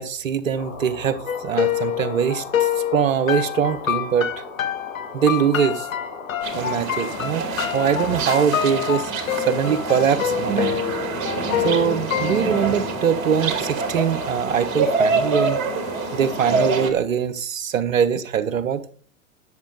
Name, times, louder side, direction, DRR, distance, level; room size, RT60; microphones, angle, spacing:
voice 1, 0.0-4.4 5.1-5.9 6.5-9.1 9.5-10.8 11.6-15.6 16.1-18.8, right 8 dB, 75° right, 11 dB, 1.3 m, -22 dB
sound 1, 0.5-16.5, left 5 dB, 55° left, 3.1 m, -38 dB
sound 2, 1.3-12.8, left 10 dB, 80° left, 0.9 m, -26 dB
sound 3, 6.4-16.9, right 4 dB, 45° right, 2.7 m, -26 dB
10.5 x 7.6 x 4.9 m, 0.41 s
hypercardioid pair, 95°, 40 cm